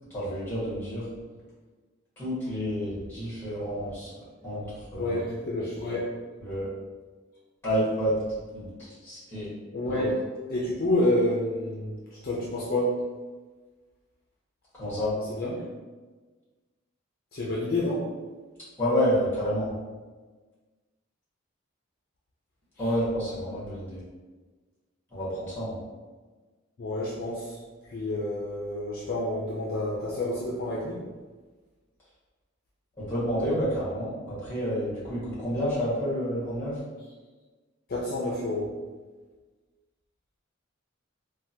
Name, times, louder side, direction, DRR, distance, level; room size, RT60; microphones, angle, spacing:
voice 1, 0.1-1.1 2.2-5.2 5.5-5.6 6.4-6.7 7.6-8.2 8.5-9.5 9.8-10.0 14.7-15.1 18.8-19.7 22.8-24.0 25.1-25.8 33.0-36.8, equal, 10° left, -10 dB, 1.4 m, -29 dB
voice 2, 5.0-6.1 9.7-10.2 10.5-13.0 15.3-15.6 17.3-18.0 26.8-27.6 27.9-31.0 37.9-38.7, left 1 dB, 45° left, -5 dB, 0.4 m, -28 dB
3.4 x 2.1 x 2.7 m, 1.3 s
head